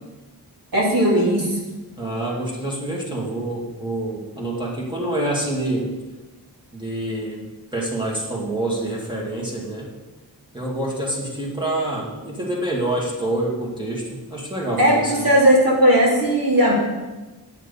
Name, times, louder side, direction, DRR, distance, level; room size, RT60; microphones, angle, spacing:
voice 1, 0.7-1.6 14.8-16.7, equal, 55° right, -5 dB, 3.1 m, -17 dB
voice 2, 2.0-5.8 6.7-7.4 7.7-9.9 10.5-15.2, right 1 dB, 10° right, -5 dB, 2.2 m, -26 dB
9.5 x 8.3 x 5.5 m, 1.2 s
wide cardioid pair, 155°, 40 cm